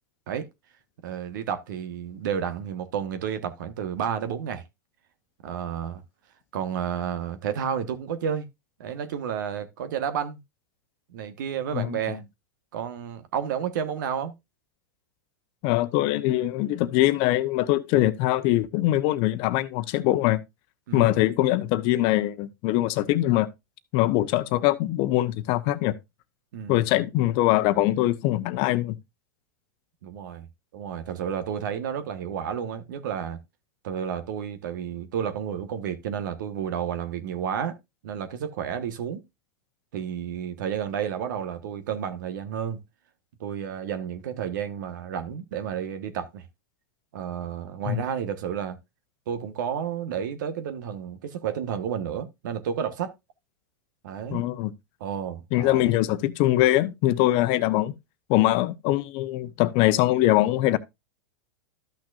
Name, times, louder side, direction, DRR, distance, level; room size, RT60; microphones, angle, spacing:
voice 1, 1.0-4.6 5.4-6.0 6.5-8.5 8.8-10.4 11.1-12.2 12.7-14.3 20.9-21.2 26.5-26.8 30.0-30.5 30.7-33.4 33.8-37.8 38.0-39.2 39.9-42.8 43.4-46.4 47.1-48.8 49.3-53.1 54.0-54.5 55.0-55.8, right 8 dB, 70° right, 1.4 m, -31 dB
voice 2, 15.6-20.4 20.9-23.5 23.9-25.9 26.7-29.0 47.9-48.0 54.3-54.7 55.5-57.9 58.3-60.8, left 16 dB, 50° left, 0.9 m, -22 dB
13.0 x 6.1 x 2.5 m
hypercardioid pair, 105°, 11 cm